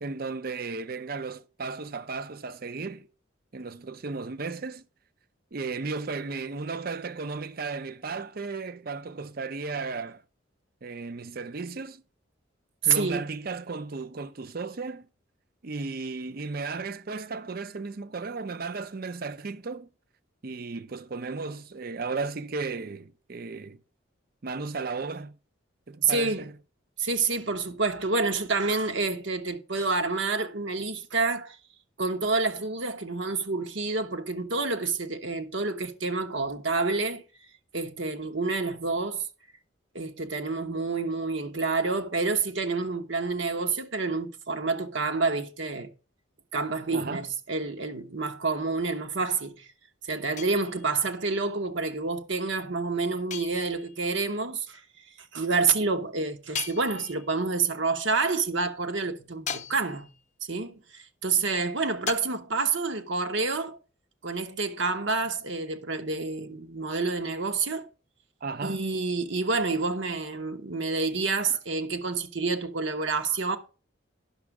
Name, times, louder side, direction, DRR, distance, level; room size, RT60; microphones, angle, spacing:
voice 1, 0.0-3.1 3.5-4.8 5.5-10.2 10.8-12.0 12.8-15.1 15.6-19.9 20.4-23.8 24.4-25.3 25.9-26.5 46.9-47.3 68.4-68.8, right 4 dB, 50° right, 0.6 m, -35 dB
voice 2, 12.8-13.2 26.0-26.5 27.0-31.6 32.0-37.2 37.7-39.3 39.9-45.9 46.5-49.7 50.0-54.8 55.3-60.1 60.4-63.8 64.2-67.9 68.6-73.6, right 4 dB, 70° right, 1.2 m, -28 dB
sound 1, 50.4-51.1 53.3-54.1 56.5-57.5 59.5-60.3 62.1-62.2, left 7 dB, 35° left, 0.7 m, -38 dB
10.5 x 6.2 x 4.8 m
head